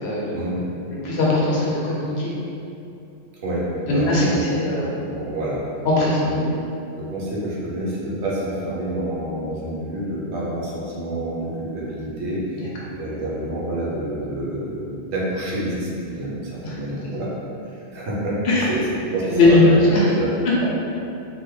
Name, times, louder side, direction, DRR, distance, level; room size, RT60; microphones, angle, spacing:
voice 1, 0.0-0.3 1.0-2.3 3.9-4.9 5.8-6.4 12.6-12.7 16.6-16.8 18.4-18.7 19.2-20.1, left 2 dB, 70° left, -5 dB, 0.9 m, -19 dB
voice 2, 3.9-4.7 5.1-5.6 6.2-6.5 7.0-17.3 17.6-18.4 18.7-18.8 19.1-20.5, right 1 dB, 75° right, -6 dB, 1.0 m, -28 dB
2.9 x 2.2 x 3.1 m, 2.8 s
omnidirectional pair, 1.2 m